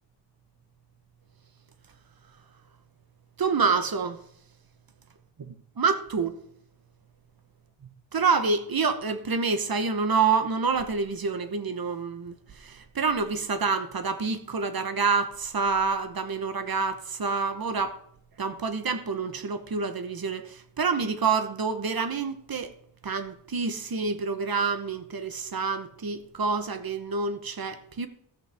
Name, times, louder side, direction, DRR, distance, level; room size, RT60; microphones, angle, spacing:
voice 1, 3.4-4.2 5.8-6.4 8.1-12.3 12.6-18.0 18.4-22.7 23.0-28.1, right 5 dB, 55° right, 1.0 m, -27 dB
13.5 x 8.5 x 3.5 m
wide cardioid pair, 120°, 43 cm